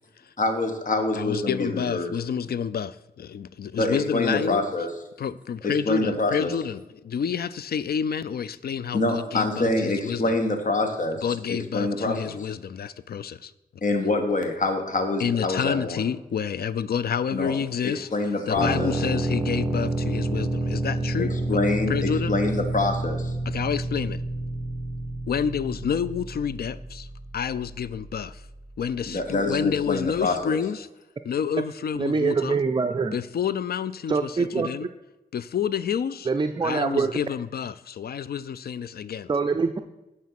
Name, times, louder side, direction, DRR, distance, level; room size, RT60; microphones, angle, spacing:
voice 1, 0.4-2.1 3.8-4.9 5.6-6.5 8.9-11.2 11.5-12.3 13.8-16.0 17.3-17.6 17.8-18.9 21.2-23.3 29.1-30.6, left 2 dB, 50° left, 5 dB, 1.5 m, -26 dB
voice 2, 1.1-4.8 5.2-10.3 11.2-13.5 15.2-18.1 18.5-21.6 21.9-22.3 23.5-24.2 25.3-27.1 27.3-28.4 28.8-30.9 31.2-32.6 33.1-34.9 35.3-36.3 36.6-39.3, left 7 dB, 70° left, 16 dB, 0.5 m, -29 dB
sound 1, 18.6-30.2, right 1 dB, ahead, 1.5 m, -30 dB
voice 3, 32.0-33.2 34.1-34.7 36.3-37.1 39.3-39.8, right 4 dB, 30° right, 7 dB, 0.5 m, -24 dB
9.6 x 5.5 x 5.9 m, 1.0 s
cardioid pair, 75°, 16 cm